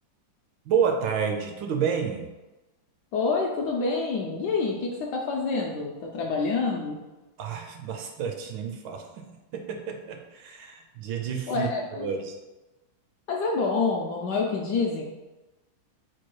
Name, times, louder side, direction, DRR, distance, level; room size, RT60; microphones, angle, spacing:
voice 1, 0.7-2.3 7.4-12.4, right 7 dB, 75° right, 4 dB, 1.2 m, -30 dB
voice 2, 3.1-7.0 11.5-12.1 13.3-15.0, left 4 dB, 75° left, 0 dB, 1.0 m, -27 dB
4.5 x 2.2 x 4.5 m, 1.1 s
omnidirectional pair, 2.2 m